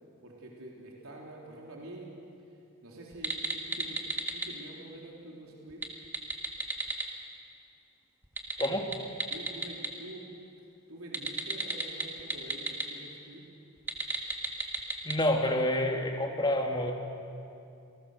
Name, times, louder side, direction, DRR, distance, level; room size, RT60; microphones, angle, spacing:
voice 1, 0.2-2.1 2.8-4.0 4.3-5.8 9.3-10.3 10.9-13.4, right 1 dB, 80° right, -2 dB, 3.7 m, -46 dB
sound 1, 3.1-4.5 5.7-7.1 8.2-9.9 11.1-12.9 13.8-15.2, right 2 dB, 10° right, 1.6 m, -33 dB
voice 2, 8.6-8.9 15.0-16.9, left 1 dB, 20° left, 3 dB, 1.7 m, -28 dB
28.0 x 19.5 x 6.8 m, 2.6 s
head